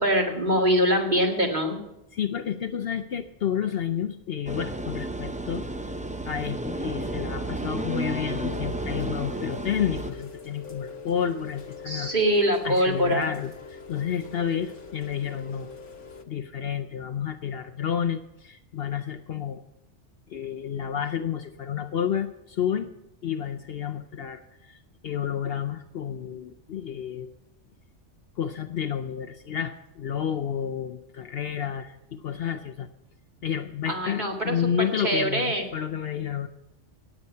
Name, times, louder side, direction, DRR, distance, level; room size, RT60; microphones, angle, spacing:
voice 1, 0.0-1.8 11.9-13.2 33.9-34.6 35.0-35.6, equal, 35° right, 0 dB, 2.3 m, -23 dB
voice 2, 2.1-5.9 6.3-12.1 12.6-15.7 16.3-19.6 20.3-22.9 23.2-27.3 28.4-32.9 33.4-36.5, left 8 dB, 60° left, 7 dB, 0.8 m, -30 dB
sound 1, 4.5-10.1, right 1 dB, 10° right, 0.3 m, -32 dB
Rain, 8.3-16.2, left 5 dB, 75° left, 1.4 m, -42 dB
17.0 x 8.9 x 5.6 m, 0.88 s
omnidirectional pair, 1.3 m